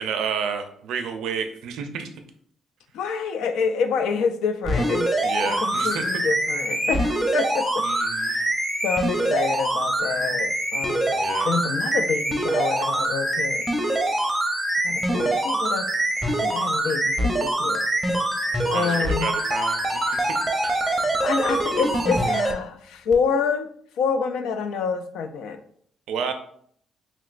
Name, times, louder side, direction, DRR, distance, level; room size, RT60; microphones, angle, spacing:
voice 1, 0.0-2.1 5.2-6.0 7.8-8.4 11.1-11.5 18.7-19.8 20.1-20.3 20.6-20.8 26.1-26.3, right 6 dB, 85° right, 7 dB, 0.4 m, -30 dB
voice 2, 2.9-5.1 5.4-7.8 8.2-8.5 8.8-11.2 11.4-13.7 14.8-15.9 16.2-17.9 18.7-19.3 20.9-23.7 24.0-25.6, left 5 dB, 85° left, 8 dB, 0.3 m, -27 dB
sound 1, 4.6-22.5 23.1-23.2, right 1 dB, 15° right, 0.6 m, -24 dB
3.1 x 3.0 x 2.4 m, 0.62 s
cardioid pair, 90°, 0 cm